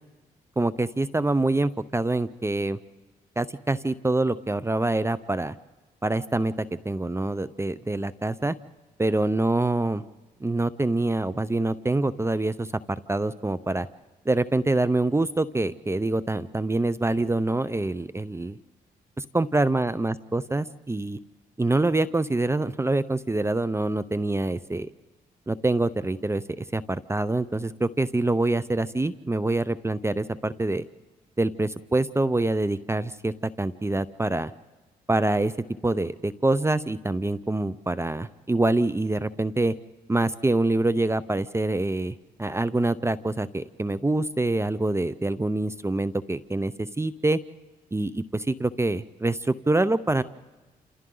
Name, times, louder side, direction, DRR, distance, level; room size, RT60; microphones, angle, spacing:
voice 1, 0.6-2.8 3.4-5.5 6.0-6.5 6.8-8.5 9.0-10.0 10.4-13.9 14.3-18.6 19.2-21.2 21.6-24.9 25.5-30.8 31.4-34.5 35.1-35.5 35.8-39.7 40.1-47.4 47.9-50.2, right 2 dB, 15° right, 15 dB, 0.7 m, -25 dB
28.0 x 28.0 x 3.9 m, 1.3 s
cardioid pair, 65°, 16 cm